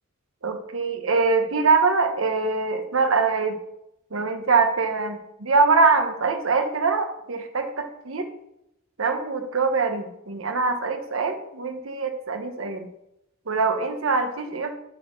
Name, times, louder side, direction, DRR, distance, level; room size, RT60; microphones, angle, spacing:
voice 1, 0.4-3.6 4.1-8.3 9.0-12.9 13.5-14.7, right 4 dB, 70° right, 6 dB, 1.0 m, -23 dB
7.6 x 4.3 x 6.2 m, 0.83 s
head